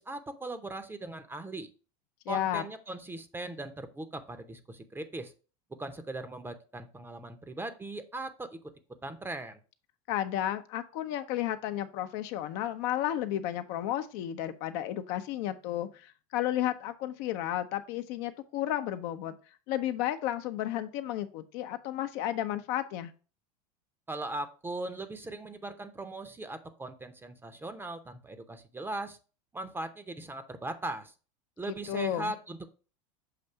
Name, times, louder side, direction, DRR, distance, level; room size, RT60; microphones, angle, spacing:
voice 1, 0.0-1.7 2.3-5.3 5.8-8.6 9.0-9.6 24.1-29.2 29.5-31.1 31.6-32.7, right 2 dB, 10° right, 10 dB, 0.7 m, -39 dB
voice 2, 2.3-2.6 10.1-19.3 19.7-23.1 31.7-32.3, left 12 dB, 55° left, 9 dB, 0.6 m, -32 dB
6.7 x 2.6 x 5.6 m, 0.35 s
hypercardioid pair, 110°, 20 cm